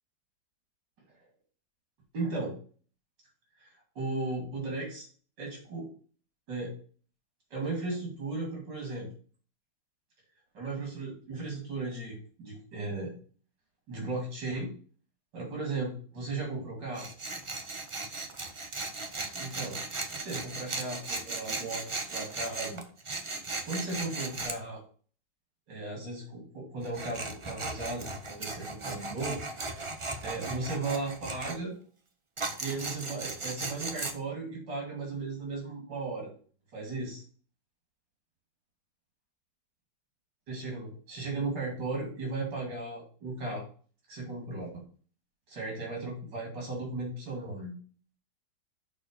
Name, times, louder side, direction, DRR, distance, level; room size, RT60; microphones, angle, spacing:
voice 1, 2.1-2.6 3.6-5.1 5.4-5.9 6.5-6.7 7.5-9.1 10.5-13.1 13.9-14.7 15.3-17.1 19.3-19.8 20.2-22.8 23.6-24.8 25.7-29.4 29.7-29.8 30.2-31.7 32.6-36.3 36.7-37.2 40.5-43.6 44.1-44.8 45.5-47.8, right 3 dB, 75° right, -1 dB, 3.1 m, -36 dB
Tools, 16.9-24.6 26.8-31.6 32.4-34.1, right 3 dB, 45° right, 0.4 m, -37 dB
6.2 x 4.5 x 6.6 m, 0.42 s
omnidirectional pair, 1.9 m